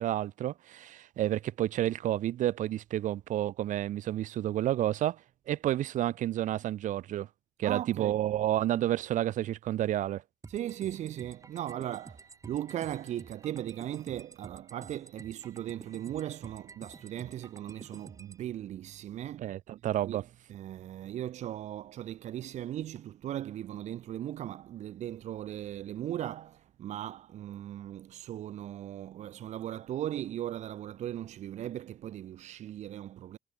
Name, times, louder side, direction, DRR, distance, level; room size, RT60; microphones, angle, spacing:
voice 1, 0.0-5.2 5.5-7.3 7.6-10.2 19.4-20.2, right 13 dB, 85° right, 1.5 m, -30 dB
voice 2, 7.6-8.2 10.5-19.5 20.0-20.2 20.5-33.4, right 12 dB, 65° right, 0.6 m, -38 dB
sound 1, 10.4-18.4, right 4 dB, 25° right, 4.3 m, -50 dB
cardioid pair, 145°, 13 cm